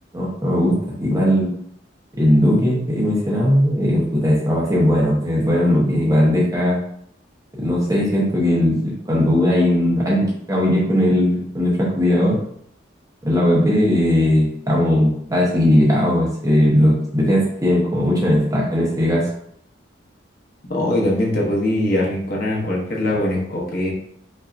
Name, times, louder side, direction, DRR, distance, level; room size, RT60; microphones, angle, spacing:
voice 1, 0.1-1.5 2.1-6.8 7.6-12.4 13.2-19.3, left 1 dB, 20° right, -4 dB, 0.9 m, -18 dB
voice 2, 20.7-23.9, left 1 dB, 50° left, -3 dB, 1.0 m, -21 dB
5.3 x 2.8 x 2.5 m, 0.69 s
head